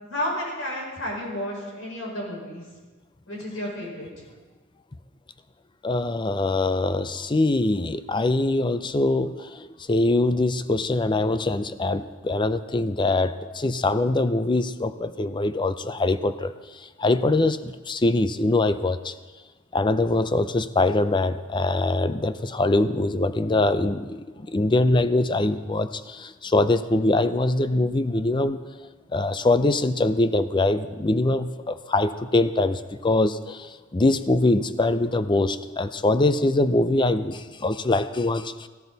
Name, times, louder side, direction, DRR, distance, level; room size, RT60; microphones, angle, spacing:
voice 1, 0.0-2.6 3.3-4.3, left 1 dB, 80° left, -2 dB, 5.3 m, -32 dB
voice 2, 5.8-16.5 16.8-19.1 19.7-28.6 29.1-38.7, left 2 dB, 25° left, 12 dB, 0.5 m, -23 dB
17.5 x 16.5 x 4.1 m, 1.4 s
head